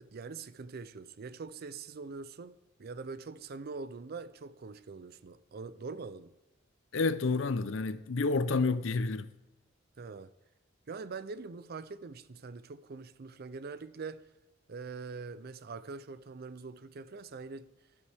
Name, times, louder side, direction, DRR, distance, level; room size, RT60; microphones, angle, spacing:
voice 1, 0.0-6.3 10.0-10.3 10.9-14.2 14.7-17.7, right 4 dB, 50° right, 0.5 m, -43 dB
voice 2, 6.9-9.3, left 3 dB, 65° left, 0.6 m, -29 dB
12.5 x 12.5 x 3.5 m
head